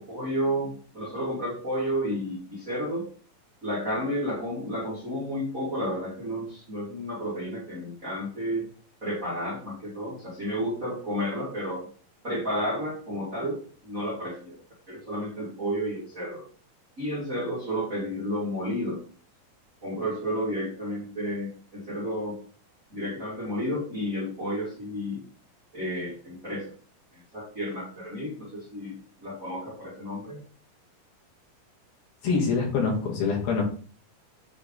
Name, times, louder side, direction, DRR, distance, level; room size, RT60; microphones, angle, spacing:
voice 1, 0.0-3.1 3.6-8.6 9.0-11.9 12.2-14.6 14.9-16.4 17.0-19.0 19.8-22.4 22.9-25.2 25.7-26.7 27.3-30.4, equal, 30° right, -7 dB, 1.6 m, -31 dB
voice 2, 32.2-33.6, left 5 dB, 75° left, -1 dB, 3.4 m, -25 dB
7.6 x 3.3 x 3.8 m, 0.43 s
omnidirectional pair, 4.3 m